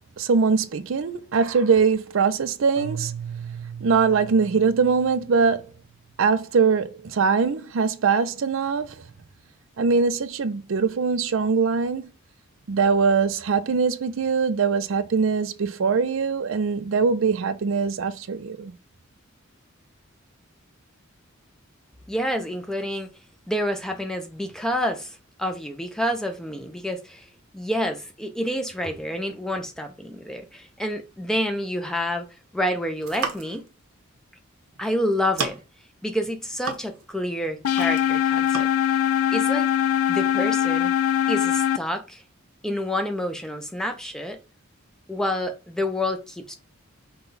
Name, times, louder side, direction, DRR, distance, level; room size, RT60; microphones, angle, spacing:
voice 1, 0.2-3.1 3.8-5.7 6.2-8.9 9.8-12.1 12.7-18.7, right 5 dB, 65° right, 0.4 m, -22 dB
Keyboard (musical), 2.8-5.9, right 7 dB, 55° left, 0.7 m, -37 dB
voice 2, 22.1-23.1 23.5-27.3 27.5-32.3 32.5-33.6 34.8-35.6 36.0-39.0 39.3-39.7 40.1-40.9 41.3-42.2 42.6-44.4 45.1-46.5, equal, 5° left, 0.4 m, -28 dB
sound 1, 32.9-33.7 34.7-34.8 35.1-35.8 36.2-37.2 37.4-38.1 38.5-38.7, right 5 dB, 90° right, 0.8 m, -33 dB
sound 2, 37.6-41.8, left 10 dB, 90° left, 0.4 m, -22 dB
5.5 x 2.3 x 3.9 m
head